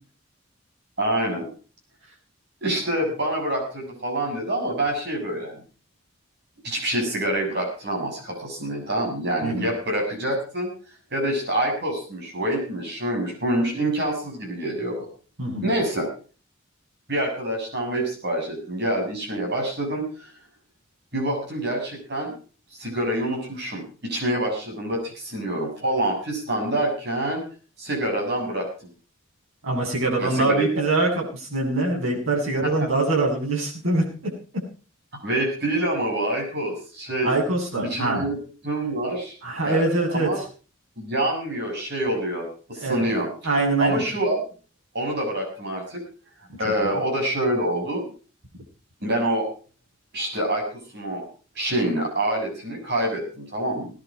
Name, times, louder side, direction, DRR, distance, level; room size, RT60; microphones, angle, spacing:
voice 1, 1.0-1.4 2.6-5.6 6.6-10.7 11.1-15.1 15.6-16.1 17.1-20.3 21.1-22.3 22.8-27.4 27.8-28.6 30.2-30.8 32.6-32.7 35.2-37.3 37.9-38.4 38.6-40.4 41.0-43.5 43.8-44.4 44.9-46.0 46.6-48.1 49.0-49.5 50.1-50.6 50.9-51.2 51.5-53.9, right 1 dB, 50° right, 1 dB, 7.6 m, -26 dB
voice 2, 29.6-34.3 37.2-38.2 39.4-40.3 42.8-43.0 43.4-44.0 46.5-47.0, right 2 dB, 90° right, -1 dB, 7.7 m, -24 dB
18.5 x 11.5 x 4.8 m, 0.37 s
head